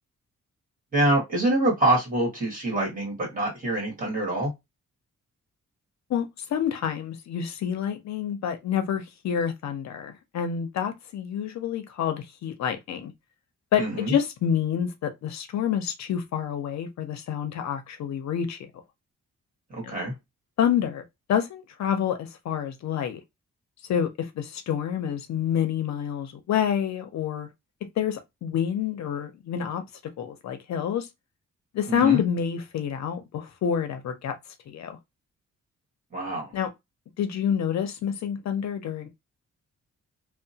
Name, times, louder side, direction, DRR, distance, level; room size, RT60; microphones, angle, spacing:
voice 1, 0.9-4.5 13.8-14.1 19.7-20.1 31.9-32.2 36.1-36.5, right 1 dB, 30° right, 1.6 m, -25 dB
voice 2, 6.1-13.1 13.7-18.6 19.8-19.9 20.6-21.0 21.3-23.2 23.9-27.5 28.0-29.8 30.2-31.1 31.7-34.4 34.7-35.0 36.5-36.7 37.2-39.1, left 8 dB, 70° left, 0.5 m, -28 dB
2.8 x 2.0 x 2.7 m
wide cardioid pair, 175°, 29 cm